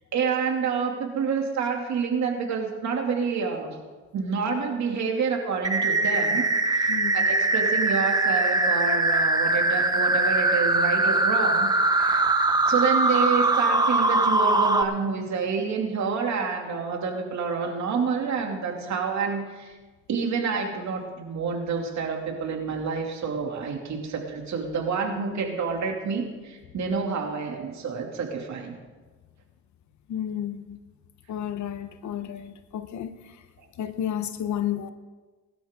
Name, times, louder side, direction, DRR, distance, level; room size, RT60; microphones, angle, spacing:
voice 1, 0.1-3.8 4.1-6.5 6.7-12.2 12.7-19.7 20.1-28.7, right 5 dB, 65° right, 2.8 m, -28 dB
sound 1, 5.6-14.8, right 2 dB, 15° right, 1.0 m, -22 dB
voice 2, 30.1-30.8 31.3-33.2 33.8-34.9, left 10 dB, 70° left, 1.1 m, -31 dB
20.0 x 12.0 x 3.8 m
cardioid pair, 90°, 30 cm